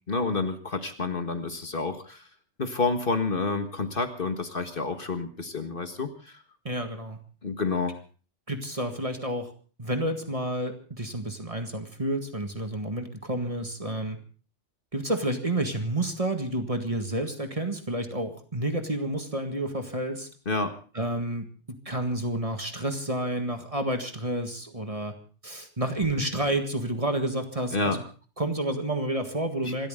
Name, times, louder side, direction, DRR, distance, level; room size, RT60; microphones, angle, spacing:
voice 1, 0.1-2.3 2.6-6.4 7.4-8.0 20.5-20.7 27.7-28.0 29.6-29.8, left 3 dB, 50° left, 7 dB, 1.8 m, -29 dB
voice 2, 6.6-7.2 8.5-9.5 9.8-14.2 14.9-20.3 20.9-25.1 25.4-28.0 28.4-29.9, right 1 dB, 30° right, 6 dB, 1.9 m, -30 dB
27.0 x 13.5 x 3.7 m, 0.38 s
omnidirectional pair, 1.2 m